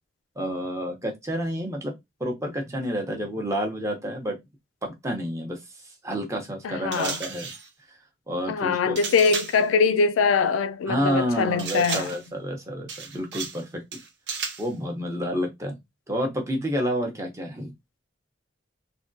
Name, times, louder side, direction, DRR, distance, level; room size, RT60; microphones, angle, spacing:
voice 1, 0.4-1.9 2.2-4.4 4.8-5.6 6.0-7.5 8.3-9.0 10.9-14.0 14.6-15.8 16.1-17.7, equal, 15° right, 0.8 m, -29 dB
voice 2, 6.6-7.2 8.5-12.1, left 5 dB, 90° left, 0.4 m, -22 dB
sound 1, 6.9-7.7 8.9-9.6 11.6-12.3 12.9-13.6 13.9-14.7, right 5 dB, 60° right, 0.8 m, -34 dB
3.4 x 2.2 x 2.6 m
head